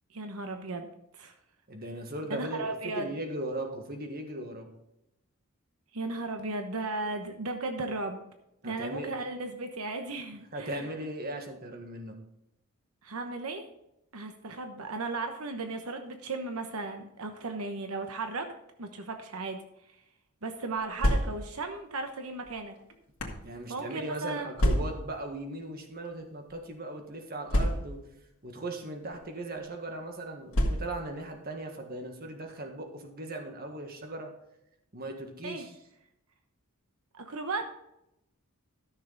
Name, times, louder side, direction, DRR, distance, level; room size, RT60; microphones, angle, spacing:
voice 1, 0.1-1.3 2.3-3.2 5.9-8.2 8.6-10.9 13.0-13.7 14.1-18.5 18.8-19.6 20.4-22.7 23.7-24.5 35.4-35.7 37.1-37.8, right 3 dB, 80° right, 5 dB, 1.0 m, -36 dB
voice 2, 1.7-4.7 8.6-9.1 10.5-12.1 23.4-28.0 28.4-34.3 34.9-35.7, right 1 dB, 45° right, 4 dB, 1.6 m, -38 dB
sound 1, 20.8-21.7 22.5-23.5 24.6-25.2 26.1-26.2 26.5-26.6 27.5-28.2 29.0-29.3 30.5-31.2, equal, 85° left, 2.0 m, -28 dB
13.0 x 6.7 x 3.9 m, 0.84 s
head